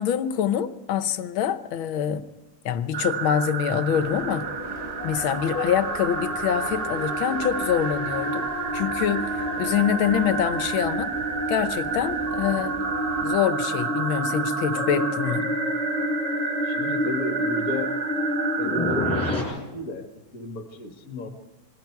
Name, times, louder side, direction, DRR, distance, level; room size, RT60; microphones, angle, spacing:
voice 1, 0.0-2.3 2.7-4.5 5.0-11.1 11.5-12.8 13.2-15.5, left 9 dB, 85° left, 1.7 m, -25 dB
sound 1, 2.9-19.3, right 5 dB, 45° right, 1.0 m, -31 dB
sound 2, 3.9-13.3, equal, 15° right, 5.9 m, -40 dB
sound 3, 4.3-19.4, equal, 5° left, 7.8 m, -30 dB
voice 2, 16.6-18.0 18.6-21.3, left 2 dB, 45° left, 2.0 m, -33 dB
27.5 x 21.0 x 4.6 m
omnidirectional pair, 2.2 m